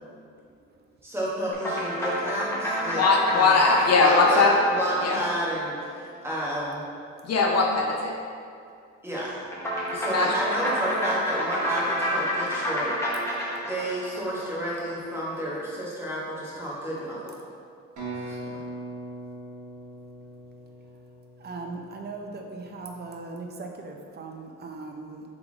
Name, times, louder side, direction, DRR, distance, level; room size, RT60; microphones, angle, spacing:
voice 1, 1.0-3.6 4.0-6.8 9.0-9.4 9.9-12.9 13.7-17.3 18.1-18.4, right 1 dB, 10° right, -7 dB, 1.3 m, -31 dB
sound 1, 1.5-6.2 9.5-14.9, equal, 10° left, 1.0 m, -30 dB
voice 2, 2.9-4.6 5.0-5.2 7.2-8.1 9.9-10.5, left 3 dB, 55° left, 0 dB, 0.6 m, -21 dB
sound 2, 18.0-21.7, right 2 dB, 75° right, 1.4 m, -39 dB
voice 3, 21.4-25.2, right 3 dB, 35° right, 2 dB, 0.5 m, -38 dB
3.6 x 3.5 x 3.5 m, 2.3 s
cardioid pair, 90°, 30 cm